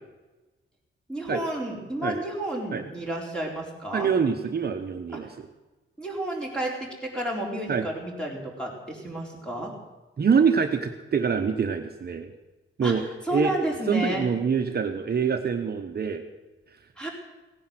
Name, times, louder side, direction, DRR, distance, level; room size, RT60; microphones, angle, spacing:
voice 1, 1.1-4.1 6.0-9.7 12.8-12.9 13.2-14.3 17.0-17.1, right 1 dB, 5° left, -1 dB, 4.1 m, -31 dB
voice 2, 3.9-5.3 7.7-7.9 10.2-12.3 12.8-13.0 13.3-13.5 13.9-16.2, right 6 dB, 50° right, 5 dB, 1.0 m, -25 dB
17.0 x 10.0 x 7.7 m, 1.1 s
wide cardioid pair, 150°, 21 cm